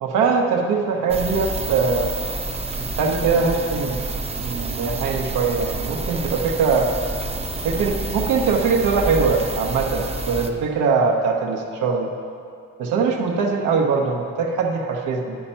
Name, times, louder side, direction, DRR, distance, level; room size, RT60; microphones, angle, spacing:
voice 1, 0.0-2.1 3.0-4.0 4.4-6.9 7.6-12.1 12.8-15.4, right 4 dB, 85° right, 1 dB, 1.0 m, -22 dB
sound 1, 1.1-10.5, right 2 dB, 20° right, 0.6 m, -28 dB
8.9 x 5.8 x 5.6 m, 2.4 s
cardioid pair, 90°, 30 cm